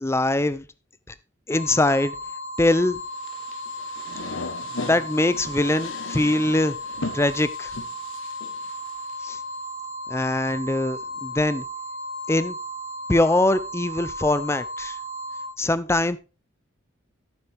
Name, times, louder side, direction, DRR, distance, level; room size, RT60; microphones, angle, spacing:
voice 1, 0.0-0.6 1.5-2.1 2.6-3.0 4.8-6.8 7.1-7.7 9.2-9.4 10.1-11.6 12.3-12.6 13.1-15.0 15.6-16.2, left 2 dB, 15° left, 15 dB, 0.5 m, -22 dB
sound 1, 1.5-15.5, equal, 35° left, 2.4 m, -35 dB
sound 2, 3.1-9.3, left 3 dB, 80° left, 1.1 m, -37 dB
13.5 x 7.1 x 3.4 m, 0.31 s
head